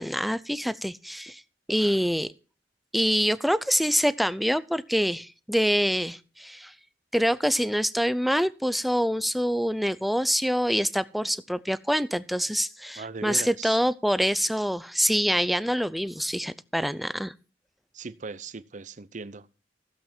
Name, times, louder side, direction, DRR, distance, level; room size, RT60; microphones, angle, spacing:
voice 1, 0.0-1.4 1.7-2.3 2.9-6.7 7.1-17.3, equal, ahead, 0.5 m, -25 dB
voice 2, 13.0-13.8 17.9-19.5, right 4 dB, 45° right, 0.8 m, -38 dB
15.5 x 8.0 x 4.4 m
head